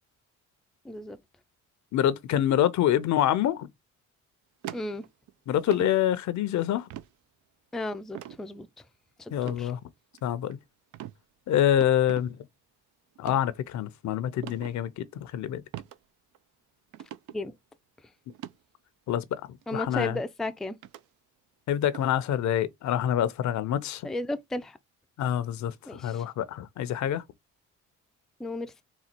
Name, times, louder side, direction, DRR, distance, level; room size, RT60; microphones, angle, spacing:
voice 1, 0.8-1.2 4.7-5.0 7.7-8.7 9.2-9.7 17.3-17.5 19.7-20.8 24.0-24.8 25.9-26.2 28.4-28.8, left 2 dB, ahead, 0.3 m, -34 dB
voice 2, 1.9-3.7 5.5-6.9 9.3-9.8 10.2-10.6 11.5-12.4 13.2-15.6 19.1-19.4 19.7-20.2 21.7-24.0 25.2-27.2, left 11 dB, 70° left, 0.6 m, -26 dB
sound 1, 4.6-5.3 5.7-5.9 6.9-7.1 8.1-8.4 9.4-9.6 10.1-10.5 10.9-11.2 11.8-12.3 13.2-13.4 14.4-14.7 15.7-16.0 16.3-16.4 16.9-17.4 18.3-18.5 19.6-19.7 20.8-21.0 21.9-22.1, right 12 dB, 80° right, 0.5 m, -40 dB
4.0 x 2.4 x 4.4 m
cardioid pair, 90°, 30 cm